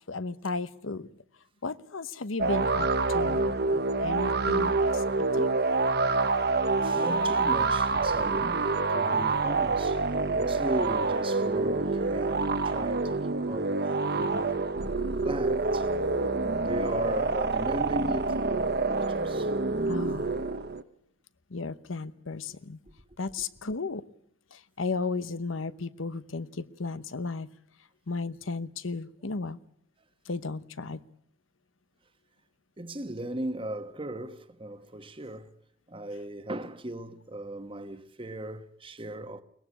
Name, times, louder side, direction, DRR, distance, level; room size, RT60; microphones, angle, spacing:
voice 1, 0.1-1.1 1.6-5.0 5.4-5.6 19.9-20.2 21.5-22.8 23.2-24.0 24.5-27.5 28.1-29.6 30.3-31.0, left 3 dB, 90° left, 0.9 m, -34 dB
sound 1, 2.4-20.8, right 3 dB, 55° right, 0.9 m, -27 dB
voice 2, 6.5-14.7 15.2-15.9 16.6-19.6 32.8-35.5 35.9-39.4, right 1 dB, 25° right, 1.2 m, -37 dB
22.5 x 19.5 x 8.4 m
head